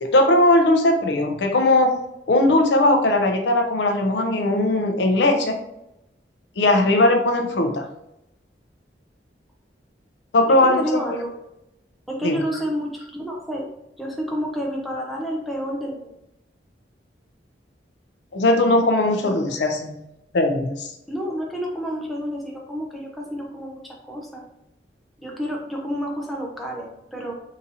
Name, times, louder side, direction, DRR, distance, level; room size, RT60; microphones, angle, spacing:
voice 1, 0.0-1.9 2.3-5.6 6.6-7.8 10.3-11.0 12.2-12.4 18.3-20.0 20.3-20.9, left 1 dB, 75° left, 5 dB, 0.5 m, -19 dB
voice 2, 10.5-11.3 12.1-13.7 14.0-16.1 19.3-19.5 21.1-24.5 25.2-27.3, equal, ahead, -1 dB, 0.6 m, -29 dB
3.8 x 2.7 x 2.7 m, 0.85 s
head